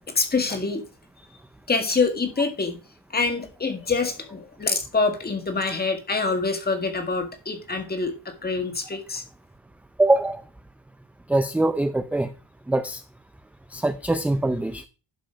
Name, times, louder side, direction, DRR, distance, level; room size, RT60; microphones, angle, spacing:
voice 1, 0.2-0.8 1.7-2.8 3.1-9.2, left 4 dB, 20° left, 6 dB, 1.9 m, -25 dB
voice 2, 10.0-10.4 11.3-12.3 12.7-13.0 13.7-14.9, right 2 dB, 5° right, 10 dB, 0.4 m, -23 dB
11.5 x 5.1 x 5.1 m, 0.33 s
cardioid pair, 145°, 43 cm